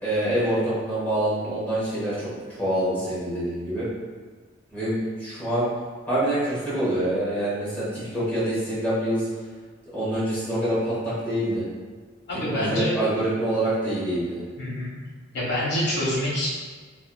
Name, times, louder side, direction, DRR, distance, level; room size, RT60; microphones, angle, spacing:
voice 1, 0.0-2.3 2.6-3.9 4.7-5.7 6.1-9.3 9.9-11.6 12.5-14.4, right 1 dB, 10° left, -11 dB, 1.1 m, -26 dB
voice 2, 12.3-12.9 14.6-14.9 15.3-16.5, left 1 dB, 55° left, -8 dB, 1.2 m, -26 dB
3.4 x 2.8 x 2.2 m, 1.5 s
head